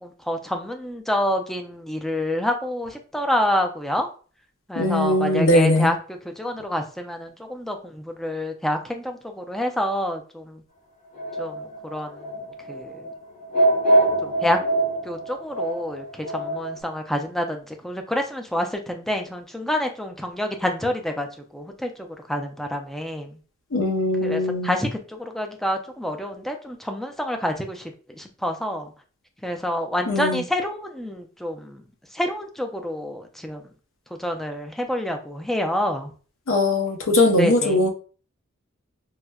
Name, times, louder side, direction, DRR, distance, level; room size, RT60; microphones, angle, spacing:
voice 1, 0.0-4.1 4.7-6.0 6.3-10.6 11.4-11.5 11.9-12.1 12.7-12.9 14.4-14.6 15.1-16.0 16.3-21.3 21.5-21.9 22.3-23.3 24.2-27.8 28.2-28.9 29.4-31.8 32.1-33.6 34.2-36.1 37.4-37.9, left 1 dB, ahead, 4 dB, 0.4 m, -27 dB
voice 2, 4.8-5.9 23.7-24.7 30.1-30.4 36.5-37.9, left 1 dB, 70° left, 4 dB, 0.7 m, -20 dB
sound 1, 11.1-16.7, right 1 dB, 40° left, 1.2 m, -24 dB
4.7 x 2.1 x 2.2 m, 0.39 s
head